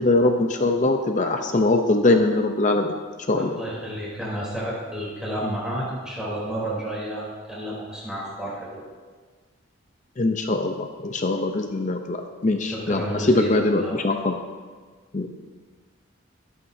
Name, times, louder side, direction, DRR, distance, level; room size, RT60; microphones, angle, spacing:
voice 1, 0.0-2.9 3.3-3.6 10.2-14.4 15.1-15.3, left 2 dB, 35° left, 5 dB, 0.6 m, -22 dB
voice 2, 3.3-8.8 12.6-14.0, right 1 dB, 5° right, -7 dB, 3.3 m, -31 dB
22.0 x 8.6 x 2.7 m, 1.5 s
head